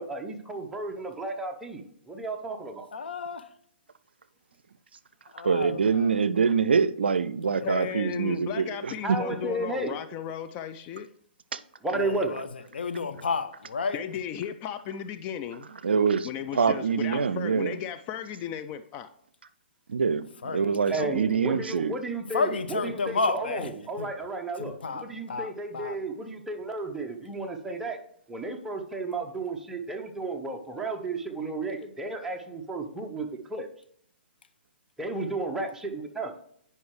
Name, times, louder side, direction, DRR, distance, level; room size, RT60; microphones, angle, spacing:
voice 1, 0.0-2.9 9.0-10.0 11.8-12.4 20.9-28.0 28.3-33.7 35.0-36.3, right 2 dB, 5° right, 0.9 m, -33 dB
voice 2, 2.9-3.4 5.3-6.2 7.6-7.8 11.9-12.5 12.7-14.0 20.4-21.1 22.3-23.7 24.0-24.1 24.6-26.0, left 4 dB, 70° left, 0.7 m, -31 dB
voice 3, 5.4-9.2 11.5-11.6 15.8-17.8 19.9-20.3 20.5-21.9, right 5 dB, 75° right, 0.5 m, -25 dB
voice 4, 7.5-11.1 13.9-15.7 16.2-19.1, left 9 dB, 25° left, 0.3 m, -35 dB
9.4 x 5.5 x 3.2 m
hypercardioid pair, 130°, 6 cm